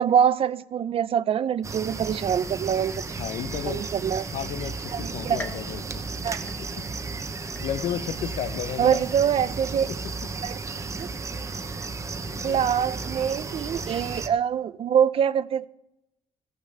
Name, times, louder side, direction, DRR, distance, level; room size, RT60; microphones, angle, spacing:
voice 1, 0.0-2.9 3.7-4.3 4.9-5.4 6.2-6.4 8.8-9.9 10.4-10.6 11.0-11.1 12.4-15.7, right 8 dB, 55° right, 0.5 m, -24 dB
sound 1, 1.6-14.3, right 4 dB, 25° right, 0.8 m, -34 dB
voice 2, 3.2-3.9 4.3-6.0 6.6-6.8 7.2-7.3 7.6-9.0 9.9-10.0 12.2-12.6, left 10 dB, 75° left, 0.6 m, -33 dB
sound 2, 5.4-7.1 7.6-8.1 8.6-8.7 9.7-9.8, equal, 15° left, 1.8 m, -43 dB
15.0 x 6.5 x 6.6 m
cardioid pair, 125°, 12 cm